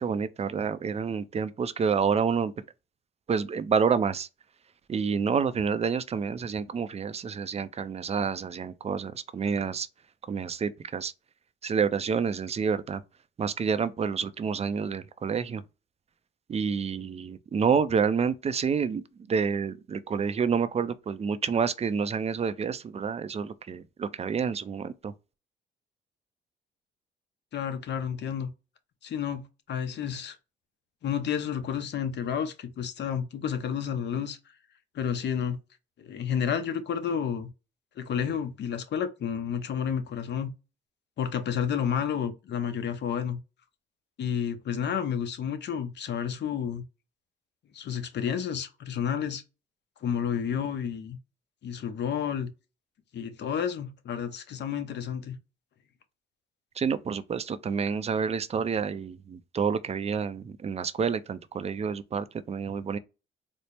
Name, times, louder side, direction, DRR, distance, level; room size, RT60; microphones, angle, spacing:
voice 1, 0.0-2.5 3.3-4.3 4.9-9.9 10.3-11.1 11.6-13.0 13.4-15.6 16.5-25.1 56.8-63.0, right 6 dB, 30° right, 0.4 m, -28 dB
voice 2, 27.5-28.5 29.0-30.4 31.0-34.4 34.9-35.6 36.0-37.5 38.0-40.5 41.2-43.4 44.2-46.8 47.7-49.4 50.0-51.2 51.6-52.5 53.1-55.4, left 8 dB, 60° left, 0.7 m, -30 dB
4.2 x 2.0 x 3.2 m
cardioid pair, 90°, 20 cm